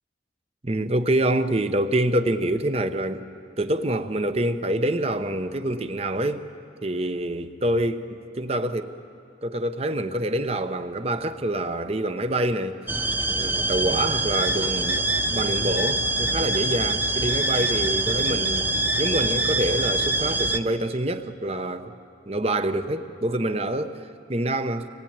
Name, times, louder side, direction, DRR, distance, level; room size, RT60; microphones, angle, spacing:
voice 1, 0.6-3.2 3.6-6.5 6.8-9.0 9.4-12.8 13.3-18.7 19.0-21.9 22.3-24.9, right 1 dB, 35° right, 0.9 m, -26 dB
sound 1, 12.9-20.6, right 2 dB, 10° right, 0.5 m, -24 dB
25.5 x 19.0 x 8.8 m
head